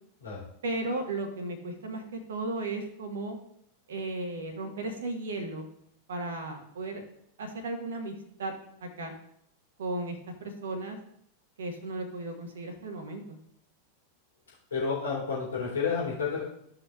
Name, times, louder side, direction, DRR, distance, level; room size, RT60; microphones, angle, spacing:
voice 1, 0.6-3.4 3.9-5.7 6.1-7.0 7.4-8.5 8.8-9.1 9.8-11.0 11.6-13.4, right 2 dB, 60° right, 3 dB, 1.3 m, -35 dB
voice 2, 14.7-16.4, left 5 dB, 70° left, -5 dB, 3.2 m, -30 dB
14.5 x 5.8 x 2.4 m, 0.71 s
figure-of-eight pair, 90°, 0 cm